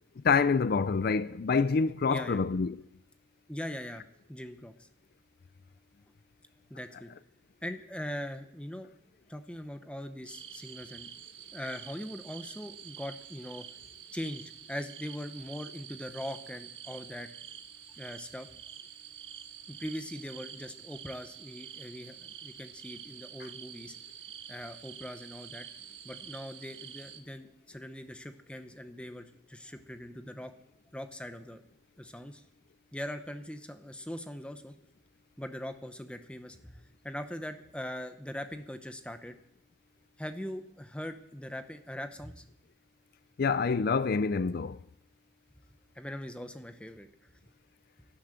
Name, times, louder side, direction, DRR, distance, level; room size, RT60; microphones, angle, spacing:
voice 1, 0.2-2.8 43.4-44.8, left 5 dB, 50° left, 0.4 m, -27 dB
voice 2, 2.1-2.4 3.5-4.9 6.7-7.1 7.6-8.9 9.3-11.1 11.5-13.7 14.1-17.3 18.0-18.5 19.7-23.9 24.5-25.7 26.0-30.5 30.9-31.6 32.0-32.4 32.9-34.7 35.4-39.4 40.2-42.5 45.9-47.3, equal, 5° left, 0.9 m, -41 dB
sound 1, 10.3-27.2, right 9 dB, 85° right, 1.4 m, -47 dB
12.0 x 11.5 x 7.4 m
head